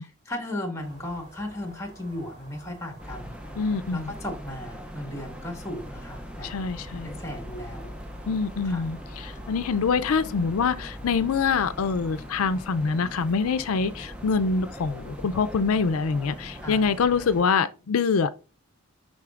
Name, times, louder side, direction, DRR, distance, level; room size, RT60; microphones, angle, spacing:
voice 1, 0.0-3.4 3.9-6.5 7.0-7.9 8.6-8.9 16.6-16.9, left 1 dB, 15° left, 1.5 m, -36 dB
sound 1, 0.8-17.0, right 1 dB, 35° right, 2.8 m, -50 dB
sound 2, 3.0-17.4, equal, 5° right, 0.5 m, -41 dB
voice 2, 3.6-4.1 6.4-7.1 8.3-18.3, left 5 dB, 90° left, 0.4 m, -25 dB
10.5 x 4.0 x 2.4 m
head